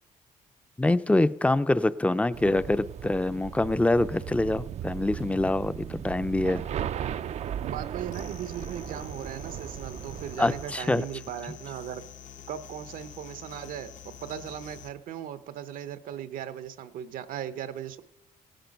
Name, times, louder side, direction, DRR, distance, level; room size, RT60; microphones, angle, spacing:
voice 1, 0.8-6.6 10.4-11.0, left 2 dB, 10° left, 15 dB, 0.5 m, -25 dB
sound 1, 2.3-10.7, right 9 dB, 50° right, 0.4 m, -36 dB
voice 2, 7.6-12.0 12.5-18.0, right 10 dB, 75° right, 13 dB, 0.8 m, -38 dB
sound 2, 8.1-14.9, left 10 dB, 60° left, 0.8 m, -47 dB
16.5 x 9.0 x 5.3 m, 0.85 s
cardioid pair, 100°, 14 cm